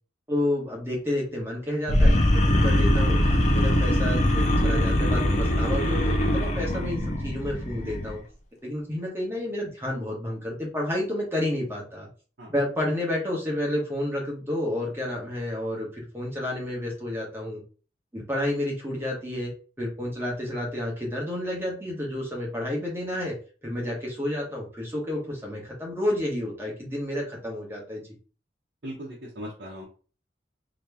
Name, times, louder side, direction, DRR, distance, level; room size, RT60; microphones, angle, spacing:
voice 1, 0.3-8.2 8.6-12.1 12.5-17.6 18.1-19.5 19.8-23.3 23.6-28.1, left 1 dB, 10° right, -3 dB, 1.1 m, -30 dB
sound 1, 1.9-8.2, left 1 dB, 40° left, 0.5 m, -22 dB
voice 2, 28.8-29.9, equal, 60° right, -5 dB, 1.0 m, -38 dB
3.0 x 2.8 x 3.4 m, 0.38 s
head